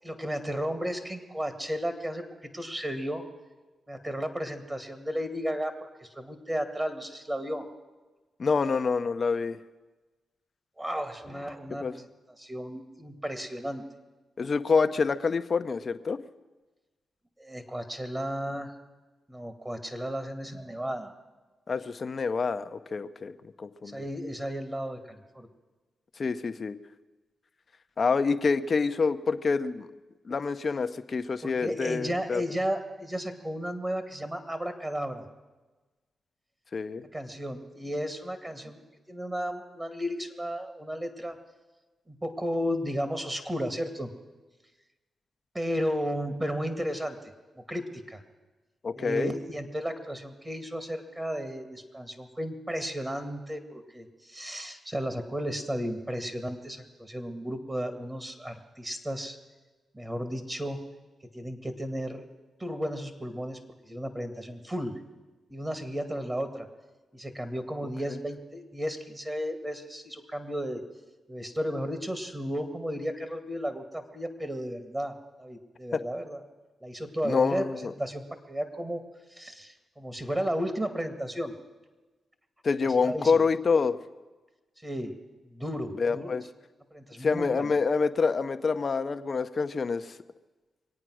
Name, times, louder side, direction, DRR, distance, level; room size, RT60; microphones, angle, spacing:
voice 1, 0.0-3.2 3.9-7.7 10.8-12.1 12.4-13.8 17.4-18.7 19.3-21.1 23.9-25.5 31.4-35.2 37.1-41.4 42.1-44.1 45.5-47.2 47.6-48.2 48.9-59.4 59.9-60.8 61.3-62.3 62.6-63.6 63.8-65.0 65.5-66.7 67.1-70.8 71.3-76.4 76.8-78.2 78.5-79.0 79.3-81.5 83.0-83.4 84.8-85.2 85.4-86.3 86.9-87.7, equal, 20° right, 8 dB, 2.0 m, -34 dB
voice 2, 8.4-9.6 11.8-11.9 14.4-16.2 21.7-23.3 23.6-24.0 26.2-26.8 28.0-29.9 30.3-32.4 36.7-37.0 48.8-49.3 75.9-76.0 77.2-77.9 82.6-84.0 86.0-86.4 87.2-90.2, left 4 dB, 50° left, 10 dB, 0.7 m, -27 dB
23.5 x 8.9 x 6.3 m, 1.2 s
cardioid pair, 55°, 0 cm